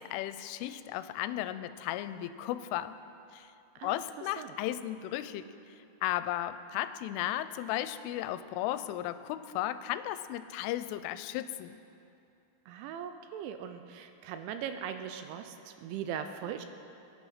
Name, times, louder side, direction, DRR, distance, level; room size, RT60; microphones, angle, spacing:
voice 1, 0.0-3.0 3.3-3.5 3.8-5.5 6.0-11.8, left 13 dB, 85° left, 12 dB, 3.1 m, -35 dB
voice 2, 12.7-16.7, right 8 dB, 85° right, 8 dB, 2.9 m, -40 dB
22.0 x 9.7 x 5.6 m, 2.7 s
omnidirectional pair, 5.6 m